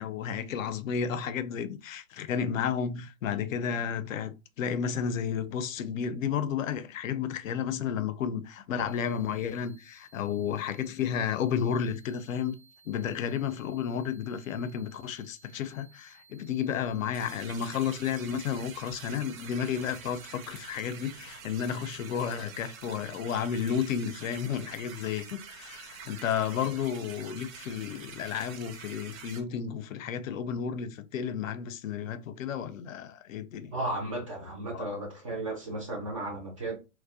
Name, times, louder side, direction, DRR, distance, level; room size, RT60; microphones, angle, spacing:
voice 1, 0.0-12.5 12.9-33.7 34.7-34.8, left 8 dB, 70° left, 0.5 m, -32 dB
sound 1, 8.9-20.3, right 5 dB, 25° left, 0.6 m, -60 dB
sound 2, 17.1-29.4, right 6 dB, 75° right, 0.6 m, -46 dB
voice 2, 33.7-36.8, right 1 dB, 25° right, 0.3 m, -34 dB
2.4 x 2.1 x 2.4 m
hypercardioid pair, 135°, 41 cm